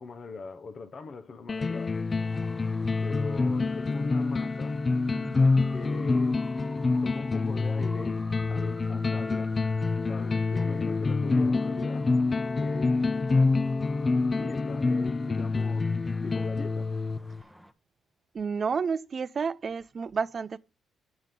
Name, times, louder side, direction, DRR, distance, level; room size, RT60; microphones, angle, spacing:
voice 1, 0.0-2.0 3.0-4.8 5.7-6.4 7.0-8.2 8.5-9.5 10.1-12.1 12.5-13.0 14.4-15.9 16.2-16.9, left 4 dB, 45° left, 0.7 m, -41 dB
sound 1, 1.5-17.4, left 3 dB, 30° left, 0.3 m, -27 dB
Traffic noise roadway noise, 2.2-17.7, equal, 5° left, 0.9 m, -52 dB
voice 2, 5.1-5.7 18.3-20.6, right 5 dB, 45° right, 0.4 m, -31 dB
7.9 x 7.3 x 3.7 m
cardioid pair, 90°, 0 cm